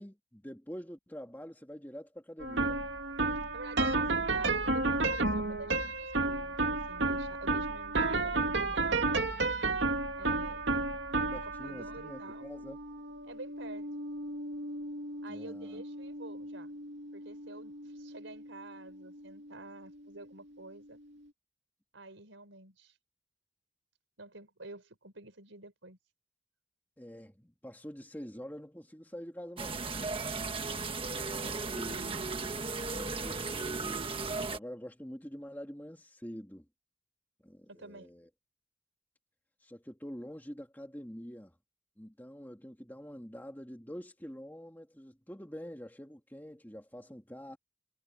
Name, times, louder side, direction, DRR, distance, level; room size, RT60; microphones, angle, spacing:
voice 1, 0.0-2.8 11.3-12.8 15.3-15.8 27.0-30.3 31.2-32.0 32.9-34.1 34.5-36.7 37.4-38.3 39.6-41.6 42.0-47.6, equal, 10° left, 2.4 m, -46 dB
sound 1, 2.4-19.6, right 3 dB, 70° right, 2.4 m, -33 dB
voice 2, 3.5-9.1 10.2-10.7 11.4-12.5 13.2-13.9 15.2-16.7 17.1-21.0 21.9-23.0 24.2-26.0 31.4-32.3 37.7-38.1, right 2 dB, 85° right, 4.7 m, -49 dB
sound 2, 29.6-34.6, right 4 dB, 30° right, 1.4 m, -36 dB
head